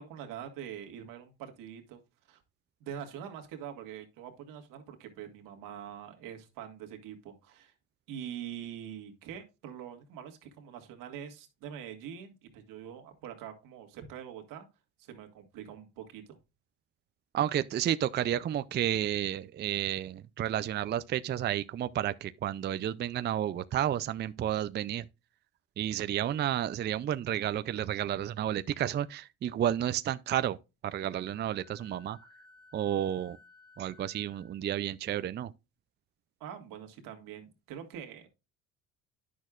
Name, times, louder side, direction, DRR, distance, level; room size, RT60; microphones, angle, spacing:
voice 1, 0.0-2.0 2.3-2.4 2.8-7.7 8.1-14.7 15.0-16.4 36.4-38.3, right 9 dB, 85° right, 1.7 m, -44 dB
voice 2, 17.3-25.0 25.8-30.6 30.8-32.2 32.7-33.4 33.8-35.5, right 11 dB, 35° right, 0.4 m, -31 dB
Wind instrument woodwind instrument, 31.1-34.6, left 3 dB, 15° left, 3.9 m, -58 dB
10.0 x 6.3 x 2.4 m
cardioid pair, 100°, 32 cm